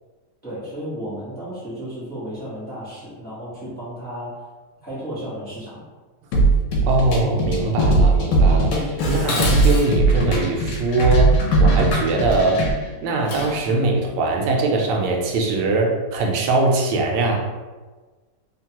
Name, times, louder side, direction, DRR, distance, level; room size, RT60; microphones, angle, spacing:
voice 1, 0.4-4.4 4.8-5.9, equal, 10° left, -10 dB, 0.7 m, -33 dB
sound 1, 6.3-12.7, right 2 dB, 85° left, 1.2 m, -18 dB
voice 2, 6.8-12.7 13.0-17.5, right 2 dB, 90° right, 1 dB, 1.2 m, -21 dB
Dishes pots and pans, 9.0-13.7, left 2 dB, 70° left, 0.8 m, -32 dB
3.1 x 2.2 x 2.8 m, 1.3 s
omnidirectional pair, 1.8 m